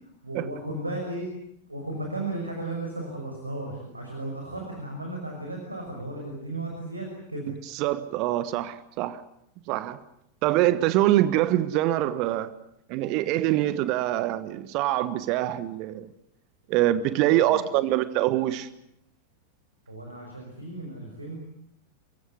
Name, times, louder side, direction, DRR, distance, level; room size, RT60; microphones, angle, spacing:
voice 1, 0.2-1.3 1.7-7.5 17.2-17.6 19.9-21.4, right 2 dB, 85° right, 2 dB, 6.0 m, -35 dB
voice 2, 7.7-9.2 9.7-10.0 10.4-12.5 12.9-16.1 16.7-18.7, right 14 dB, 40° right, 14 dB, 1.3 m, -24 dB
29.5 x 16.0 x 9.7 m, 0.76 s
figure-of-eight pair, 90°, 0 cm